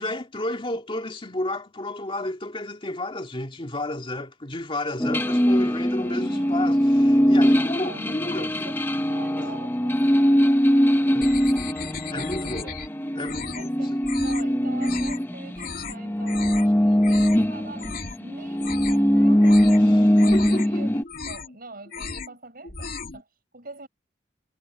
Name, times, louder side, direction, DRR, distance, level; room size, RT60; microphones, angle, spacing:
voice 1, 0.0-8.7 9.5-9.6 11.1-11.3 12.1-12.7 13.2-13.7 20.3-21.1, left 1 dB, 30° left, 2.2 m, -31 dB
sound 1, 5.0-15.6 15.9-21.0, equal, 10° left, 0.9 m, -21 dB
voice 2, 6.0-6.6 7.6-10.5 11.0-12.8 13.5-17.9 18.2-20.9 21.3-23.9, right 2 dB, 55° right, 6.5 m, -44 dB
sound 2, 11.2-12.9 13.2-13.7 14.0-14.4 14.8-15.2 15.5-15.9 16.3-16.7 17.0-17.4 17.8-18.2 18.5-19.1 19.4-19.8 20.2-20.7 21.0-21.6 21.9-22.3 22.6-23.2, left 5 dB, 55° left, 3.1 m, -36 dB
head